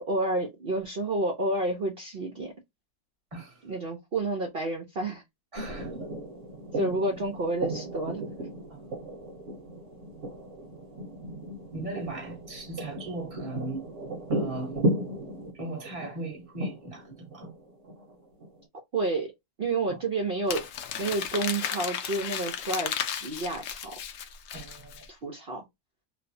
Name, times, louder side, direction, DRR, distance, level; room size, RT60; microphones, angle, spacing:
voice 1, 0.1-2.5 3.6-5.2 6.7-8.3 18.9-19.3 19.6-20.7 21.0-23.9 25.1-25.6, right 2 dB, 85° right, 0.5 m, -30 dB
voice 2, 3.3-3.7 5.5-6.1 8.7-8.9 11.7-13.9 14.3-14.9 15.5-17.5 19.9-20.0 24.5-25.1, right 2 dB, 25° right, 1.0 m, -38 dB
sound 1, 5.6-18.6, right 1 dB, 50° right, 1.2 m, -35 dB
Crumpling crinkling, 20.5-25.1, left 8 dB, 75° left, 0.7 m, -34 dB
3.1 x 2.0 x 2.6 m
omnidirectional pair, 1.9 m